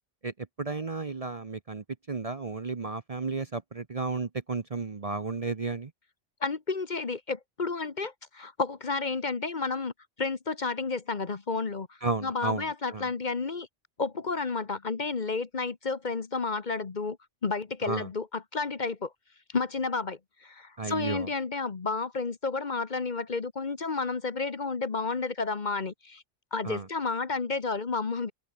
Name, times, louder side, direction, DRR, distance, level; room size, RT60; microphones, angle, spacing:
voice 1, 0.2-5.9 12.0-13.1 17.8-18.1 20.8-21.3 26.6-26.9, right 4 dB, 35° right, 0.9 m, -33 dB
voice 2, 6.4-9.9 10.2-11.9 12.2-13.7 14.0-17.2 17.4-19.1 19.5-26.2 26.5-28.3, left 4 dB, 40° left, 1.2 m, -31 dB
omnidirectional pair, 1.2 m